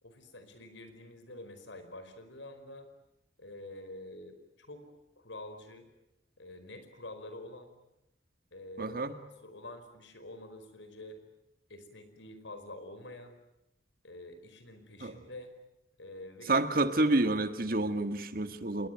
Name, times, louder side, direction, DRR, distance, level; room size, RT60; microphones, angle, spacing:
voice 1, 0.0-2.9 3.4-5.9 6.4-7.7 8.5-11.2 11.7-13.4 14.0-15.5 16.0-16.6, left 1 dB, 80° left, 9 dB, 4.9 m, -47 dB
voice 2, 8.8-9.1 15.0-15.1 16.5-18.9, right 2 dB, 50° right, 9 dB, 1.7 m, -28 dB
28.0 x 21.5 x 9.2 m, 0.88 s
head